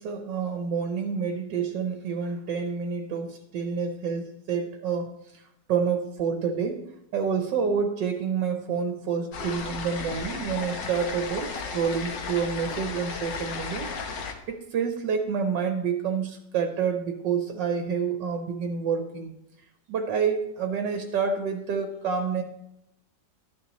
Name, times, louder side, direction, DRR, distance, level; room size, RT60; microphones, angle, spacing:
voice 1, 0.0-5.4 5.7-6.8 7.1-19.3 19.9-22.4, right 6 dB, 80° right, 5 dB, 1.5 m, -28 dB
sound 1, 9.3-14.3, left 4 dB, 80° left, 1.7 m, -34 dB
12.5 x 9.8 x 3.0 m, 0.83 s
omnidirectional pair, 1.9 m